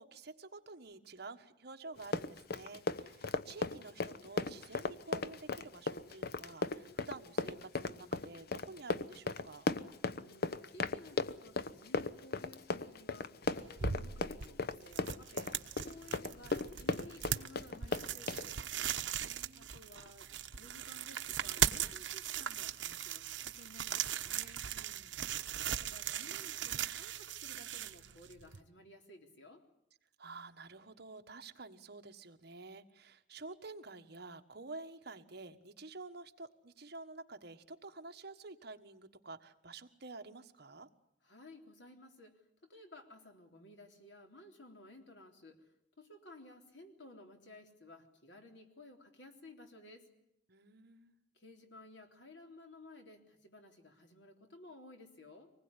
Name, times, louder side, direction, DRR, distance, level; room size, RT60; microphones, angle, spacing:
voice 1, 0.0-9.7 19.1-19.7 24.7-25.2 30.2-40.9 50.5-51.2, right 3 dB, 60° right, 7 dB, 1.5 m, -50 dB
Run, 2.0-18.5, left 3 dB, 55° left, 0.9 m, -36 dB
voice 2, 10.1-15.6 15.8-18.6 19.5-24.6 25.8-29.6 41.2-42.3 42.7-45.7 46.0-50.1 51.3-55.5, left 2 dB, 70° left, 4 dB, 3.6 m, -56 dB
sound 1, 13.4-28.6, right 9 dB, 80° right, 1.0 m, -39 dB
25.0 x 20.0 x 9.9 m, 0.78 s
head